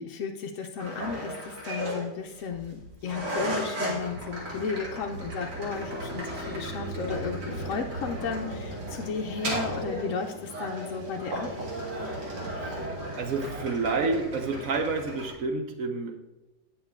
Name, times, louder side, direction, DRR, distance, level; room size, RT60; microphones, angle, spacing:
voice 1, 0.0-11.5, left 5 dB, 65° left, 3 dB, 0.8 m, -34 dB
sound 1, 0.8-15.3, right 1 dB, 75° right, 2.5 m, -35 dB
sound 2, 5.3-11.2, left 2 dB, 15° right, 0.3 m, -48 dB
voice 2, 12.5-12.9 13.2-16.2, right 3 dB, 60° right, 4 dB, 1.0 m, -29 dB
8.4 x 6.7 x 3.5 m, 1.0 s
omnidirectional pair, 1.8 m